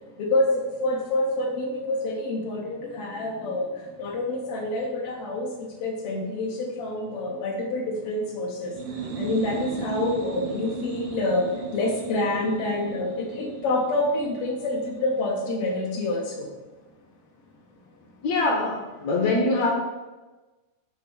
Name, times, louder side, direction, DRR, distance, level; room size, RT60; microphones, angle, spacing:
voice 1, 0.2-3.7 4.0-8.7 9.2-11.5 11.7-16.5, left 2 dB, 85° left, -1 dB, 1.3 m, -27 dB
sound 1, 8.6-16.1, right 4 dB, 85° right, 2.6 m, -36 dB
voice 2, 18.2-19.7, left 2 dB, 70° left, -1 dB, 1.7 m, -23 dB
7.8 x 3.0 x 6.1 m, 1.2 s
omnidirectional pair, 3.9 m